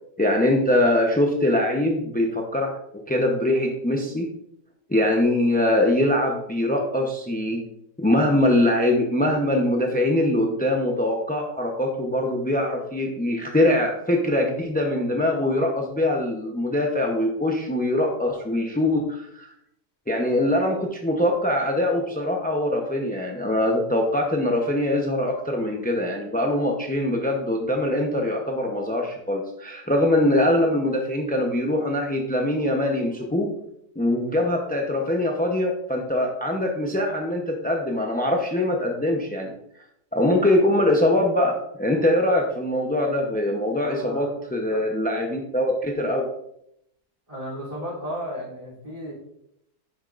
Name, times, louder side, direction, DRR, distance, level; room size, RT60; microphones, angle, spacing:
voice 1, 0.2-4.3 4.9-7.6 8.0-19.5 20.1-33.5 34.0-39.5 40.1-46.3, left 1 dB, 10° left, 1 dB, 0.4 m, -23 dB
voice 2, 43.8-44.3 44.7-44.8 47.3-49.1, equal, 20° right, -4 dB, 3.3 m, -34 dB
10.5 x 7.2 x 2.5 m, 0.77 s
omnidirectional pair, 1.7 m